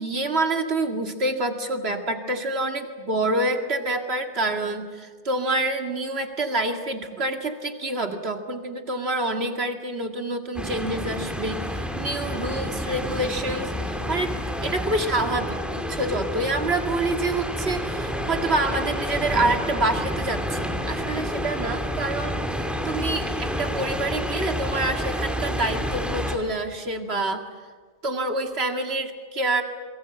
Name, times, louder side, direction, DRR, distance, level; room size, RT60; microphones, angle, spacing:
voice 1, 0.0-14.3 14.6-27.4 28.0-29.6, right 2 dB, 85° right, 5 dB, 2.4 m, -27 dB
sound 1, 10.6-26.4, equal, ahead, 2.5 m, -29 dB
28.0 x 22.5 x 7.8 m, 1.5 s
omnidirectional pair, 1.0 m